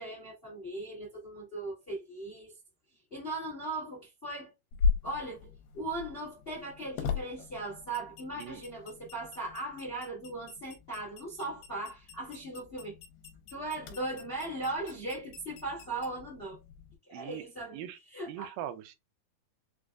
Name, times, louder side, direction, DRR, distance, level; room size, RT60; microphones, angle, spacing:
voice 1, 0.0-2.6 3.1-4.5 5.0-12.9 13.5-16.6 17.1-18.5, right 2 dB, 65° left, 0.5 m, -38 dB
sound 1, 4.7-17.0, left 5 dB, 85° left, 2.5 m, -38 dB
voice 2, 17.1-17.4 17.7-18.0 18.3-19.0, right 12 dB, 80° right, 2.2 m, -41 dB
6.1 x 2.3 x 2.3 m
omnidirectional pair, 4.4 m